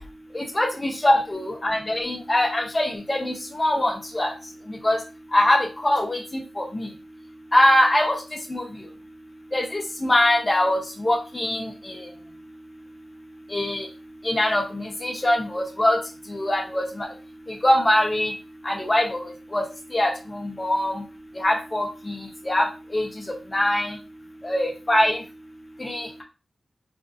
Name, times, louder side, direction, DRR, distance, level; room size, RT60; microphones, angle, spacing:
voice 1, 0.3-4.3 4.8-5.0 5.3-6.9 7.5-8.2 8.5-8.6 9.5-12.0 13.5-13.9 14.2-16.0 16.3-16.8 17.6-18.3 18.6-19.2 19.5-19.6 19.9-20.9 21.4-22.2 22.5-22.7 22.9-23.1 23.5-24.0 24.4-25.2 25.8-26.2, left 1 dB, 20° left, 1 dB, 0.7 m, -22 dB
3.5 x 2.6 x 2.5 m, 0.32 s
wide cardioid pair, 150°, 0 cm